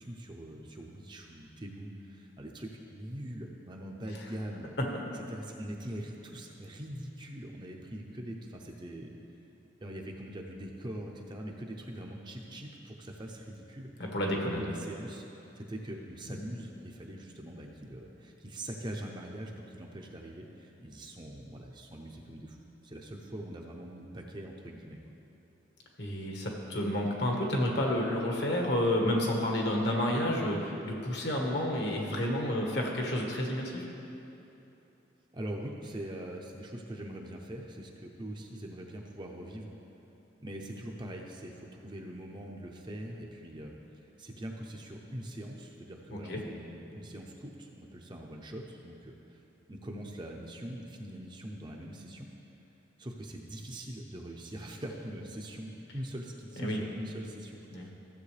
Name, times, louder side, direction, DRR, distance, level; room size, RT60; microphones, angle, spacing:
voice 1, 0.0-4.8 5.3-9.1 9.8-25.0 35.3-39.7 40.4-43.8 44.2-49.4 49.7-52.3 53.0-57.9, right 1 dB, 25° right, 0 dB, 0.6 m, -42 dB
voice 2, 14.1-14.7 26.0-33.8 46.1-46.4 56.6-56.8 57.7-57.9, left 1 dB, 60° left, 0 dB, 1.4 m, -30 dB
14.5 x 7.6 x 3.3 m, 2.9 s
head